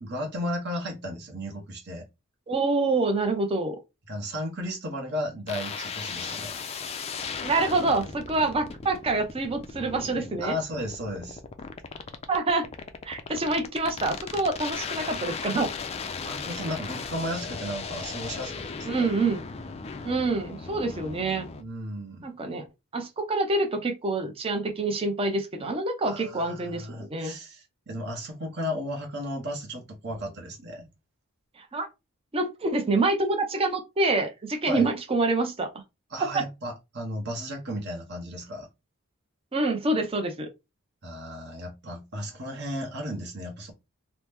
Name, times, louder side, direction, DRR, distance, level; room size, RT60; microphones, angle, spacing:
voice 1, 0.0-2.1 4.1-6.5 10.4-11.4 16.2-19.1 21.6-22.3 26.1-30.9 34.7-34.9 36.1-38.7 41.0-43.7, equal, 50° right, 1.0 m, -34 dB
voice 2, 2.5-3.8 7.4-10.5 12.3-12.7 13.0-15.7 18.9-19.4 20.0-21.5 22.2-22.7 22.9-27.4 31.6-31.9 32.3-35.7 36.3-36.4 39.5-40.5, right 2 dB, 25° right, 0.5 m, -26 dB
sound 1, 5.5-21.6, left 5 dB, 30° left, 0.3 m, -36 dB
2.9 x 2.0 x 3.3 m
head